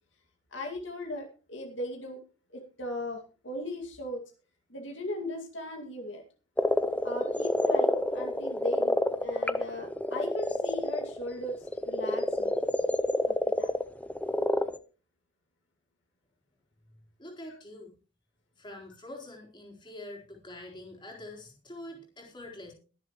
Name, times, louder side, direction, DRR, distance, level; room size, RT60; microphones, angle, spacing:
voice 1, 0.5-2.2 2.5-4.2 4.7-6.2 7.0-12.7 13.3-13.7, left 1 dB, 65° left, 2 dB, 2.3 m, -38 dB
sound 1, 6.6-14.8, left 1 dB, 5° left, 0.6 m, -28 dB
voice 2, 17.2-18.0 18.6-22.7, left 1 dB, 25° left, 0 dB, 4.0 m, -45 dB
22.5 x 7.5 x 3.1 m, 0.34 s
head